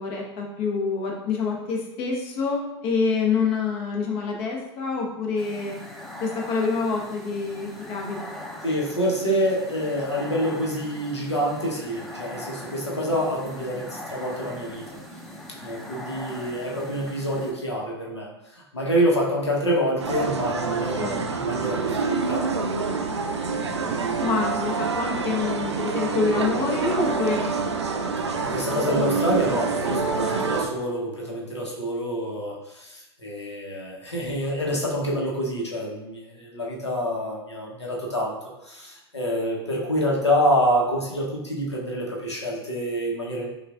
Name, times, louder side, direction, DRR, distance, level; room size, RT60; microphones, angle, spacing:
voice 1, 0.0-5.8 6.2-8.4 21.0-21.2 24.2-27.6, left 4 dB, 45° left, 0 dB, 1.0 m, -27 dB
sound 1, 5.4-17.5, left 1 dB, ahead, 0.6 m, -40 dB
voice 2, 8.6-14.9 15.6-22.6 28.4-43.5, equal, 90° left, -3 dB, 0.9 m, -27 dB
sound 2, 20.0-30.7, right 4 dB, 85° right, 0.4 m, -26 dB
5.5 x 2.4 x 2.4 m, 0.91 s
figure-of-eight pair, 90°, 14 cm